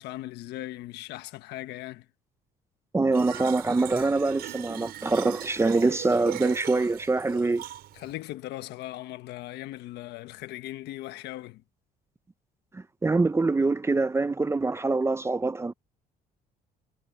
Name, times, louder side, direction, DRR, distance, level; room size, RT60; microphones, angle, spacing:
voice 1, 0.0-2.0 7.9-11.6, left 15 dB, 80° left, 1.2 m, -38 dB
voice 2, 2.9-7.6 12.7-15.7, right 3 dB, 15° right, 0.7 m, -24 dB
Fill (with liquid), 3.1-8.1, right 12 dB, 70° right, 5.5 m, -40 dB
cardioid pair, 110°, 17 cm